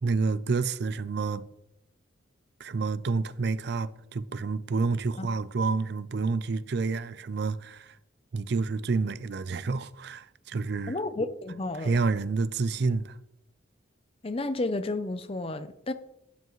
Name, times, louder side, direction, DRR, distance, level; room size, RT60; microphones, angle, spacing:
voice 1, 0.0-1.5 2.6-8.0 8.3-11.0 11.8-13.2, right 4 dB, 55° right, 0.4 m, -29 dB
voice 2, 10.9-12.0 14.2-15.9, left 2 dB, 30° left, 0.6 m, -31 dB
12.0 x 10.0 x 3.1 m
head